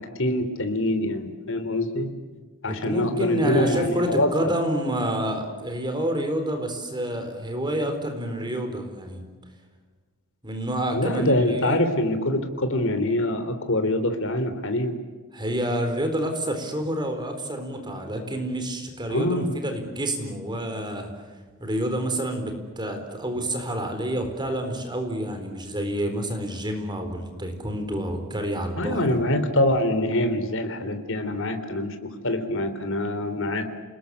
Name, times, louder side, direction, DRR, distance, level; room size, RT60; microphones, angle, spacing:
voice 1, 0.2-2.1 2.6-4.3 10.9-14.9 19.1-19.5 28.8-32.0 32.2-33.6, left 1 dB, 60° left, 8 dB, 3.5 m, -24 dB
voice 2, 2.7-9.2 10.4-11.8 15.3-21.1 21.6-29.2, right 1 dB, 20° right, 6 dB, 4.2 m, -28 dB
29.0 x 20.5 x 8.4 m, 1.4 s
head